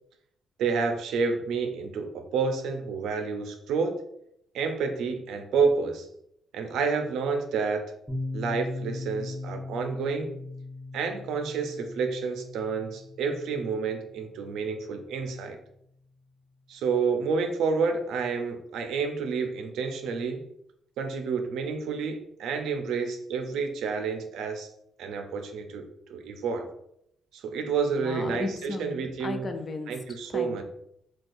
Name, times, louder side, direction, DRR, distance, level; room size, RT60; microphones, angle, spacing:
voice 1, 0.6-3.9 4.5-6.1 6.5-7.8 8.3-10.3 10.9-15.6 16.7-20.4 21.0-24.7 25.0-25.8 26.1-26.7 27.3-29.5 29.9-30.6, right 5 dB, 80° right, 6 dB, 0.5 m, -29 dB
Piano, 8.1-15.5, left 2 dB, 15° right, 0.8 m, -39 dB
voice 2, 28.0-30.0 30.3-30.6, left 3 dB, 35° left, 6 dB, 0.4 m, -35 dB
3.9 x 2.3 x 2.6 m, 0.75 s
cardioid pair, 90°, 0 cm